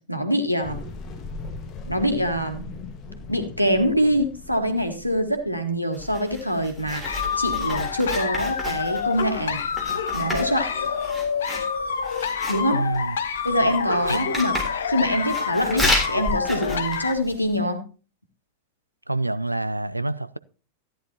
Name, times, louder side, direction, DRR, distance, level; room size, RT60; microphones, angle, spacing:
voice 1, 0.1-0.8 1.9-2.7 3.3-9.6 10.1-10.9 12.5-12.9 13.4-14.6 14.9-17.8, equal, 90° left, 1.5 m, -24 dB
sound 1, 0.6-5.8, left 3 dB, 30° left, 1.6 m, -39 dB
Writing, 5.9-17.6, left 1 dB, 5° right, 3.5 m, -32 dB
sound 2, 7.0-17.1, left 6 dB, 65° left, 0.9 m, -27 dB
voice 2, 12.7-13.2 14.1-14.3 19.1-20.4, right 2 dB, 85° right, 0.4 m, -27 dB
14.0 x 10.0 x 2.9 m
figure-of-eight pair, 90°, 0 cm